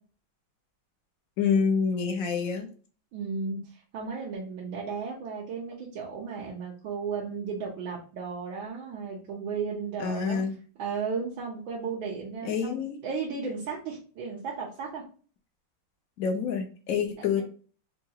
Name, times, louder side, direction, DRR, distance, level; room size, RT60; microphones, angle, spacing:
voice 1, 1.4-2.7 10.0-10.6 12.4-13.0 16.2-17.4, left 6 dB, 75° left, 4 dB, 0.7 m, -27 dB
voice 2, 3.1-10.4 10.8-15.0, right 5 dB, 75° right, -3 dB, 1.5 m, -34 dB
4.5 x 2.3 x 2.8 m, 0.39 s
omnidirectional pair, 2.2 m